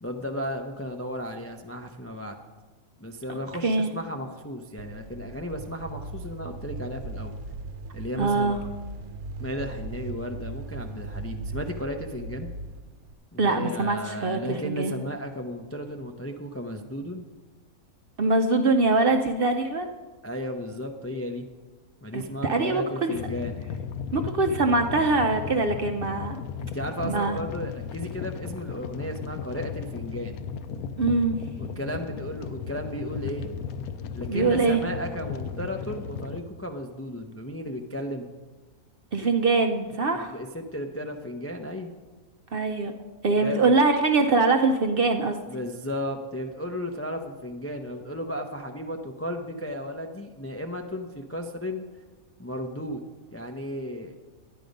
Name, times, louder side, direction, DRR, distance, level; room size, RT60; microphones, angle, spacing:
voice 1, 0.0-2.4 3.0-7.3 7.9-8.5 9.4-12.5 13.3-17.2 20.2-21.5 22.0-23.6 26.6-30.4 31.6-33.5 34.1-38.3 40.1-41.9 43.4-43.7 45.5-51.8 52.4-53.0 53.3-54.1, left 1 dB, 20° left, 4 dB, 0.3 m, -34 dB
sound 1, 4.8-13.1, right 3 dB, 80° right, 1.2 m, -38 dB
voice 2, 8.2-8.6 13.4-14.9 18.2-19.9 22.1-23.2 24.1-26.4 27.0-27.4 31.0-31.4 34.3-34.8 39.1-40.3 42.5-42.9 43.2-45.4, right 3 dB, 55° right, 5 dB, 0.7 m, -23 dB
sound 2, 23.1-36.4, left 7 dB, 80° left, 1.1 m, -36 dB
11.0 x 9.9 x 5.2 m, 1.3 s
omnidirectional pair, 1.5 m